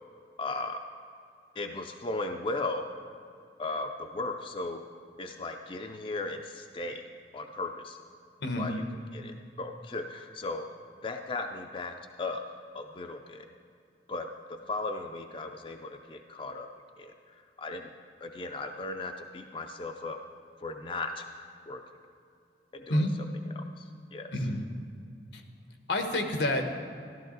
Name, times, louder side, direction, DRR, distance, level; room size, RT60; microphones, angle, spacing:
voice 1, 0.4-0.8 1.6-2.9 3.6-4.8 5.2-7.0 7.3-8.0 8.6-10.7 11.0-13.5 14.1-16.7 17.0-17.9 18.2-20.2 20.6-21.3 21.7-21.8 22.7-23.3 23.6-24.3, left 2 dB, 30° left, 5 dB, 0.4 m, -37 dB
voice 2, 8.4-8.7 22.9-23.1 24.3-24.6 25.3-25.4 25.9-26.7, left 1 dB, 80° left, 5 dB, 1.2 m, -28 dB
13.5 x 12.5 x 3.9 m, 2.4 s
head